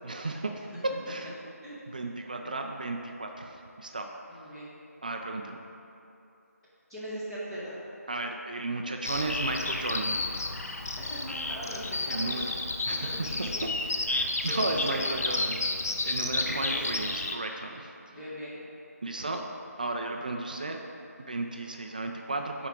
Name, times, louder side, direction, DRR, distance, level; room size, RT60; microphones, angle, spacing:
voice 1, 0.0-0.7 1.1-1.3 1.9-4.1 5.0-5.6 8.1-10.2 12.1-12.5 12.9-13.1 14.1-17.9 19.0-19.5 19.8-20.8 21.2-22.7, right 2 dB, 30° right, 3 dB, 0.3 m, -34 dB
voice 2, 4.3-4.7 6.9-7.8 11.0-12.4 13.0-13.5 13.8-14.1 14.4-15.2 16.2-17.0 18.1-18.6, equal, 5° left, -15 dB, 1.5 m, -40 dB
Bird vocalization bird call bird song, 9.0-17.4, left 2 dB, 65° left, 0.6 m, -31 dB
8.9 x 4.7 x 3.7 m, 2.8 s
figure-of-eight pair, 170°, 9 cm